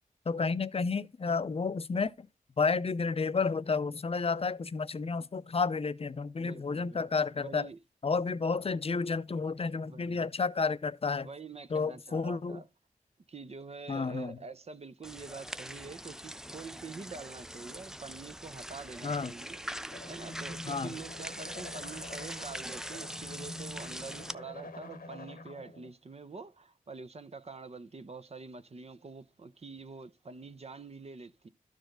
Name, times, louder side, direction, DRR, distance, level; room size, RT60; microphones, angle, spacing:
voice 1, 0.3-2.3 2.6-7.7 8.0-11.3 11.7-12.6 13.9-14.4 19.0-19.3 20.7-20.9, left 4 dB, 40° left, 0.6 m, -31 dB
voice 2, 6.4-7.0 7.3-7.8 9.8-10.3 11.2-12.7 13.3-31.5, right 4 dB, 45° right, 0.7 m, -46 dB
sound 1, 15.0-24.3, equal, 5° right, 0.3 m, -43 dB
sound 2, 19.9-25.9, left 2 dB, 85° left, 1.1 m, -47 dB
12.0 x 4.9 x 3.8 m
cardioid pair, 55°, 15 cm